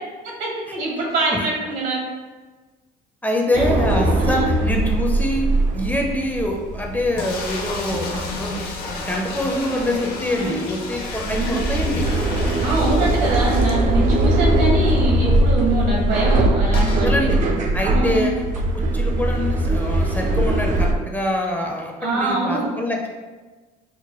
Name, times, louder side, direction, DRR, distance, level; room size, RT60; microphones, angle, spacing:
voice 1, 0.4-2.0 3.5-3.6 4.2-4.5 10.3-10.5 11.2-11.6 12.6-17.1 17.9-18.3 22.0-22.7, right 2 dB, 75° right, -3 dB, 1.3 m, -24 dB
voice 2, 3.2-5.5 5.7-8.1 8.4-8.6 8.8-12.0 16.7-17.4 17.7-18.3 18.9-23.1, left 1 dB, 10° left, 0 dB, 0.4 m, -24 dB
sound 1, 3.5-20.9, right 1 dB, 50° right, 0.5 m, -21 dB
sound 2, 7.2-14.3 14.7-14.8 15.0-15.1 16.7-17.1, left 3 dB, 70° left, 0.7 m, -32 dB
4.5 x 2.1 x 3.0 m, 1.3 s
cardioid pair, 110°, 17 cm